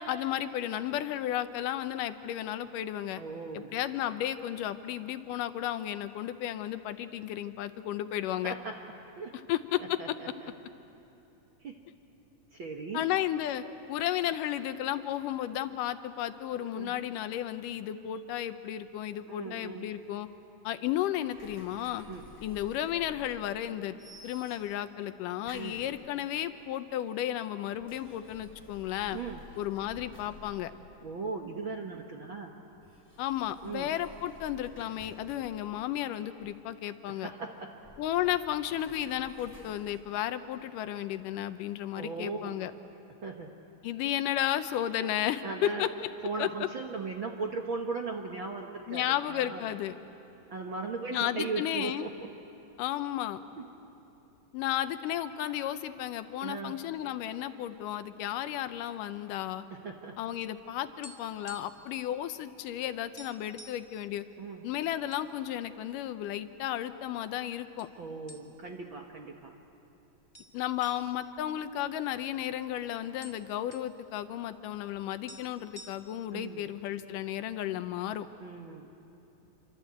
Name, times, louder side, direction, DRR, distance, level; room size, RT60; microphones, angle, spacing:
voice 1, 0.0-3.2 3.5-8.5 9.5-10.2 12.9-20.3 20.6-22.1 22.4-24.0 24.2-29.2 29.6-30.7 33.2-37.3 38.0-42.7 43.8-45.9 46.4-46.5 48.9-50.0 51.1-52.1 52.8-53.4 54.5-59.6 60.2-64.2 64.6-67.9 70.5-78.3, left 12 dB, 75° left, 11 dB, 2.3 m, -33 dB
voice 2, 3.2-3.7 8.1-8.8 9.2-9.4 9.8-10.5 11.6-11.8 12.5-13.1 16.6-17.0 19.3-19.8 22.1-22.3 25.5-25.8 29.1-29.4 31.0-32.5 33.6-33.9 37.1-37.7 41.9-42.6 43.2-43.5 45.4-45.8 46.2-49.0 49.3-49.6 50.5-52.3 53.6-53.7 56.4-56.8 59.7-60.2 64.4-64.6 68.0-69.5 76.3-76.7 78.4-78.9, right 4 dB, 55° right, 2 dB, 1.5 m, -38 dB
sound 1, 21.3-23.7 24.0-24.9 25.4-26.4 27.6-31.2 32.7-36.7 37.7-40.0, left 1 dB, 5° right, 3.4 m, -54 dB
sound 2, 60.9-61.9 62.2-62.4 62.7-62.8 63.2-63.9 64.6-65.3 65.6-65.8 66.5-67.1 67.8-67.9 68.3-68.8 69.2-69.3 70.3-72.4 72.7-72.8 73.0-73.9 74.9-75.0 75.3-76.3, equal, 20° left, 1.1 m, -51 dB
27.0 x 25.5 x 8.4 m, 3.0 s
omnidirectional pair, 3.9 m